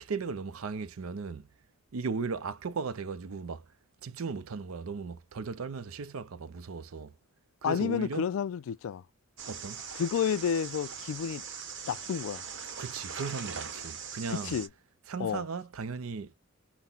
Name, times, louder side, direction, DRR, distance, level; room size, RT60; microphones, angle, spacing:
voice 1, 0.0-1.5 1.9-3.7 4.0-7.2 7.6-8.3 9.5-9.8 12.8-14.6 15.1-16.3, right 5 dB, 80° right, 0.5 m, -37 dB
voice 2, 7.6-9.0 9.9-11.4 11.9-12.5 14.4-14.7 15.2-15.4, left 7 dB, 70° left, 0.3 m, -30 dB
sound 1, 9.4-14.7, right 6 dB, 60° right, 1.1 m, -41 dB
5.7 x 2.1 x 3.9 m
head